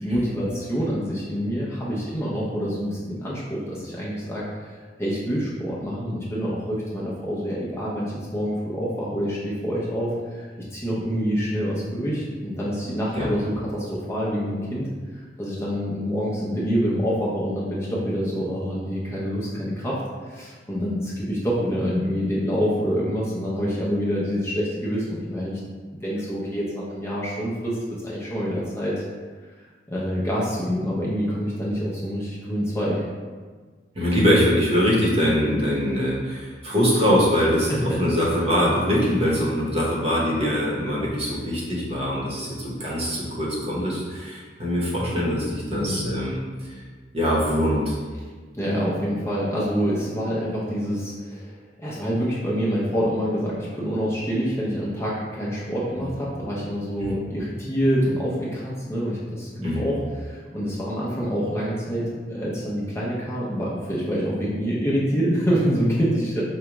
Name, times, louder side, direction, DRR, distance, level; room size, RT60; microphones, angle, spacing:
voice 1, 0.0-4.7 5.0-14.9 15.4-20.0 20.3-25.6 25.9-29.0 29.9-33.0 37.7-37.8 45.7-46.1 48.5-66.4, equal, 15° left, -7 dB, 0.6 m, -26 dB
voice 2, 33.9-46.8 47.1-48.0 56.0-56.1 59.6-59.9, equal, 35° right, -5 dB, 0.9 m, -23 dB
4.8 x 2.2 x 3.0 m, 1.5 s
head